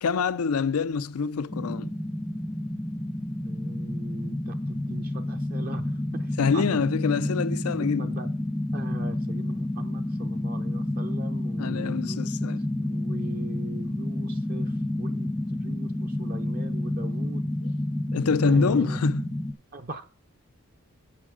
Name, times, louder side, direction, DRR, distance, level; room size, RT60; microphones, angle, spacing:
voice 1, 0.0-1.9 6.4-8.1 11.6-12.6 18.1-19.3, left 5 dB, 85° left, 0.5 m, -26 dB
sound 1, 1.5-19.5, left 1 dB, 10° left, 0.5 m, -30 dB
voice 2, 3.5-6.8 7.2-7.4 7.7-8.3 8.7-12.3 12.8-17.5 18.4-19.0 19.7-20.1, right 3 dB, 40° right, 0.6 m, -41 dB
8.7 x 7.4 x 4.8 m
head